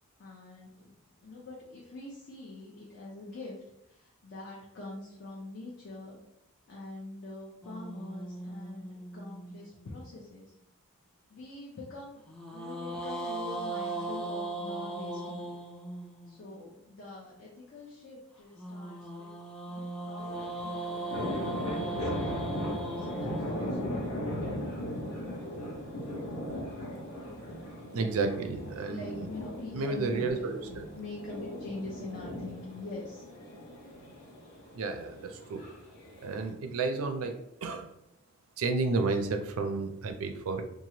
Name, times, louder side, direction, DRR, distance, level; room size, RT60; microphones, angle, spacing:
voice 1, 0.2-0.9 1.2-6.2 6.7-10.5 11.3-15.5 16.3-19.3 19.6-21.3 21.8-22.6 23.0-24.4 28.9-33.2, left 2 dB, 55° left, -4 dB, 0.6 m, -44 dB
sound 1, 7.6-10.0 12.3-16.4 18.6-24.8, right 2 dB, 5° left, 0.3 m, -39 dB
sound 2, 20.2-36.5, equal, 90° left, 0.9 m, -38 dB
voice 2, 27.9-29.3 29.7-30.9 34.7-35.6 36.2-37.3 37.6-37.9 38.6-40.6, right 3 dB, 80° right, 6 dB, 0.4 m, -31 dB
3.0 x 2.3 x 2.8 m, 0.81 s
head